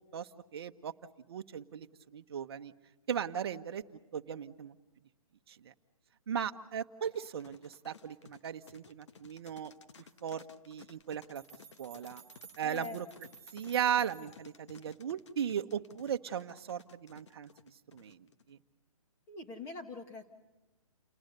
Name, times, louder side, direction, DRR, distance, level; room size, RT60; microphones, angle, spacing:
voice 1, 0.1-0.9 1.3-1.9 2.1-2.7 3.1-3.8 4.1-4.8 5.5-5.7 6.3-9.7 10.2-11.4 11.8-12.2 12.6-13.1 13.5-17.5 17.9-18.6, right 8 dB, 45° right, 8 dB, 1.1 m, -37 dB
sound 1, 7.0-18.5, left 6 dB, 55° left, 1.4 m, -57 dB
sound 2, 11.0-11.1 11.3-14.5, right 9 dB, 15° right, 0.8 m, -55 dB
voice 2, 12.6-13.0 19.3-20.3, left 3 dB, 15° left, 4 dB, 1.8 m, -43 dB
29.0 x 19.5 x 6.8 m, 1.1 s
hypercardioid pair, 160°, 18 cm